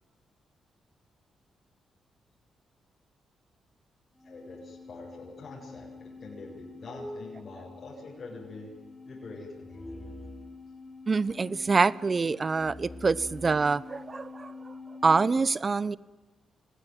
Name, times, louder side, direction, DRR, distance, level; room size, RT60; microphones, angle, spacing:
voice 1, 4.2-8.7 9.0-10.1, left 3 dB, 55° left, 7.7 m, -45 dB
sound 1, 4.2-15.4, left 2 dB, 10° left, 6.2 m, -46 dB
voice 2, 11.1-14.7 15.0-16.0, right 4 dB, 35° right, 0.9 m, -26 dB
26.5 x 19.0 x 9.4 m
cardioid pair, 70°, 0 cm